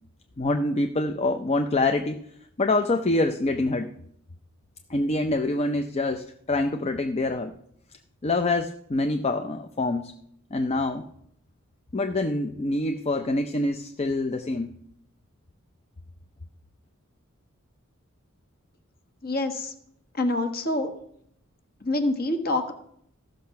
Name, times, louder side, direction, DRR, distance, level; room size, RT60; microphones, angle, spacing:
voice 1, 0.4-2.2 2.6-3.9 4.9-7.5 8.2-10.1 10.5-11.1 11.9-14.7, left 2 dB, 30° left, 7 dB, 0.5 m, -25 dB
voice 2, 19.2-19.7 20.1-20.9 21.8-22.7, left 2 dB, 45° left, 7 dB, 1.3 m, -26 dB
14.5 x 6.4 x 5.8 m, 0.70 s
head